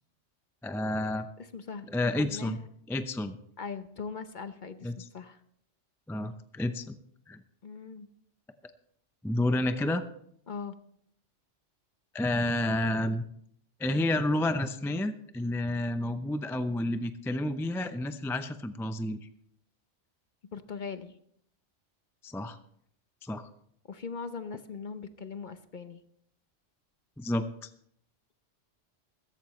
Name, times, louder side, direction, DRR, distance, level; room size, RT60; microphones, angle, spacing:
voice 1, 0.6-1.3 1.9-2.6 2.9-3.4 4.8-5.0 6.1-7.0 7.3-7.4 9.2-10.0 12.1-13.2 13.8-19.2 22.2-22.6 23.2-23.4 27.2-27.7, left 1 dB, 5° left, 9 dB, 0.4 m, -30 dB
voice 2, 1.5-2.7 3.6-5.4 7.6-8.1 10.5-10.7 20.5-21.1 23.9-26.0, left 5 dB, 45° left, 10 dB, 0.8 m, -40 dB
15.5 x 14.5 x 3.2 m, 0.68 s
omnidirectional pair, 1.2 m